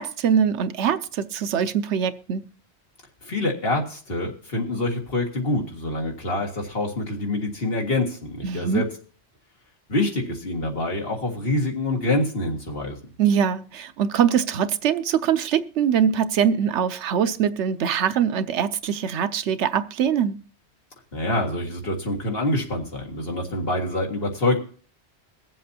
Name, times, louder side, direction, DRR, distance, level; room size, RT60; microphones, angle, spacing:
voice 1, 0.0-2.4 8.4-8.8 13.2-20.4, right 8 dB, 80° right, 1.0 m, -23 dB
voice 2, 3.2-8.9 9.9-13.0 21.1-24.6, left 2 dB, 55° left, 2.1 m, -26 dB
22.5 x 7.6 x 2.8 m
omnidirectional pair, 1.2 m